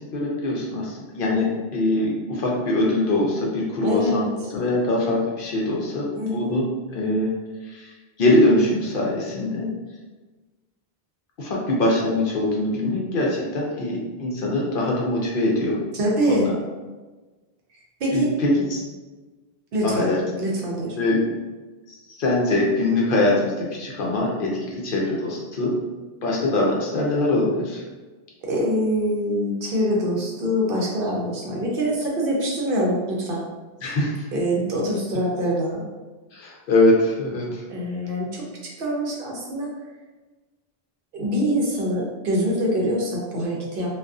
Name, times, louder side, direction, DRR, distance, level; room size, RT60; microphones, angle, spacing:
voice 1, 0.0-4.3 4.5-6.1 6.3-6.6 6.9-7.3 7.6-7.9 8.2-9.7 11.4-15.8 16.3-16.4 18.1-18.8 19.8-20.2 21.0-21.2 22.1-25.7 26.2-27.8 33.8-34.2 36.3-37.6, left 2 dB, 65° left, -3 dB, 0.7 m, -22 dB
voice 2, 3.8-4.3 6.1-6.6 15.9-16.5 18.0-18.3 19.7-20.1 20.4-21.0 28.5-33.4 34.3-35.8 37.7-39.7 41.1-44.0, equal, 65° right, -2 dB, 0.7 m, -24 dB
2.5 x 2.2 x 2.3 m, 1.2 s
omnidirectional pair, 1.1 m